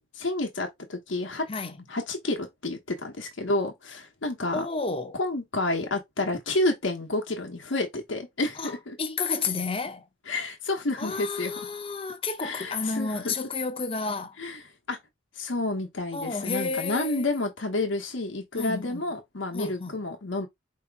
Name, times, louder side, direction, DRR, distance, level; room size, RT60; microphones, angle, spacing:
voice 1, 0.0-1.5 1.9-4.7 5.2-9.0 10.3-11.5 12.4-13.3 14.4-14.6 14.9-15.0 15.3-20.5, left 2 dB, 75° left, 1.0 m, -30 dB
voice 2, 4.5-5.2 8.6-10.1 11.0-14.4 16.1-17.4 18.6-19.0 19.5-19.9, left 4 dB, 30° left, 0.7 m, -31 dB
4.8 x 2.9 x 3.4 m
head